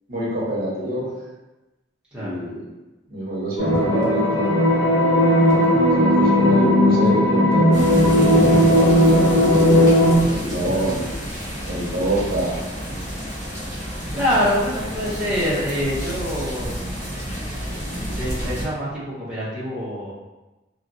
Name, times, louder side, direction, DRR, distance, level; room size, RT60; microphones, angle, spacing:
voice 1, 0.1-1.1 2.2-2.6 3.1-4.5 5.5-10.0 10.2-11.1 11.7-12.6, right 1 dB, 50° right, -6 dB, 0.9 m, -26 dB
sound 1, 3.6-10.2, left 1 dB, 90° left, 0.9 m, -16 dB
sound 2, 7.7-18.7, equal, 40° left, 1.2 m, -30 dB
voice 2, 14.1-16.8 17.9-20.1, equal, 5° right, -11 dB, 0.7 m, -25 dB
3.0 x 2.4 x 2.5 m, 1.1 s
head